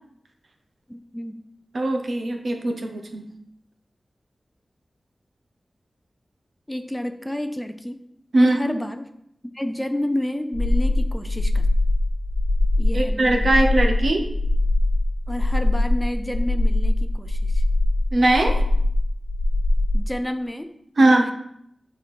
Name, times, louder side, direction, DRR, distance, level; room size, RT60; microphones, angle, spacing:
voice 1, 0.9-1.4 6.7-8.0 8.4-9.1 9.5-11.7 12.8-13.5 15.3-17.6 19.9-21.3, left 1 dB, 10° left, 8 dB, 0.5 m, -30 dB
voice 2, 1.7-3.2 8.3-8.6 12.9-14.3 18.1-18.6 21.0-21.3, right 2 dB, 65° right, 4 dB, 1.0 m, -20 dB
sound 1, 10.5-20.0, left 1 dB, 75° left, 1.0 m, -21 dB
7.4 x 4.4 x 4.4 m, 0.73 s
wide cardioid pair, 80°, 0 cm